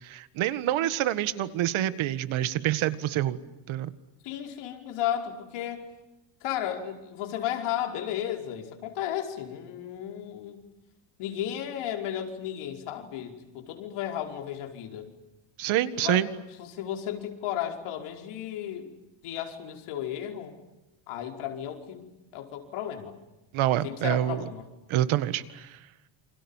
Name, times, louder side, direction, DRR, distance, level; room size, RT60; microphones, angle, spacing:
voice 1, 0.0-3.4 3.7-3.9 15.6-16.3 23.5-24.5 24.9-25.8, right 13 dB, 70° right, 14 dB, 1.9 m, -27 dB
voice 2, 4.2-5.9 6.4-10.6 11.2-15.1 16.0-16.3 16.6-18.9 19.2-20.6 21.1-23.1 23.8-24.6, left 10 dB, 90° left, 4 dB, 5.3 m, -34 dB
28.5 x 27.5 x 7.4 m, 1.0 s
cardioid pair, 145°, 49 cm